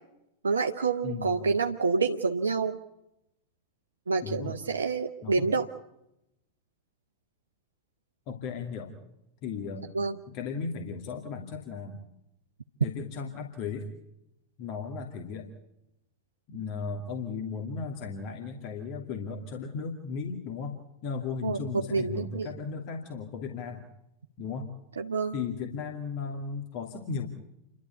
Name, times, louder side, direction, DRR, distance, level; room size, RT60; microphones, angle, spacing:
voice 1, 0.4-2.8 4.1-5.6 9.9-10.2 21.4-21.6 21.9-22.5 25.0-25.3, right 4 dB, 70° right, 4 dB, 0.9 m, -27 dB
voice 2, 1.0-1.4 4.2-4.6 5.2-5.5 8.3-8.9 9.4-9.9 10.3-12.0 12.8-13.9 14.6-15.5 16.5-20.8 21.0-23.8 24.4-24.7 25.3-27.3, left 5 dB, 45° left, 2 dB, 2.5 m, -36 dB
29.0 x 12.5 x 8.3 m, 0.86 s
figure-of-eight pair, 90°, 0 cm